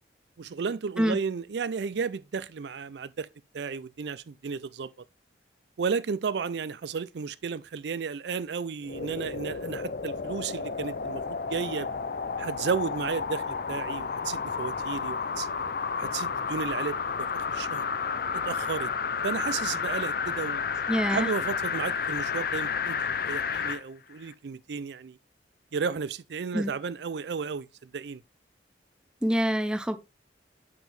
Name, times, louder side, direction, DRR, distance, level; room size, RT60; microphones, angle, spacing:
voice 1, 0.4-3.3 3.5-4.9 5.8-11.9 12.4-15.5 16.0-17.8 18.3-18.9 19.2-20.6 21.1-23.0 23.3-25.2 25.7-28.2, right 5 dB, 70° right, 0.4 m, -33 dB
sound 1, 8.8-23.8 24.3-24.4, left 6 dB, 55° left, 0.6 m, -31 dB
voice 2, 20.9-21.3 26.5-26.7 29.2-30.0, equal, 5° right, 0.6 m, -26 dB
7.5 x 6.0 x 3.3 m
head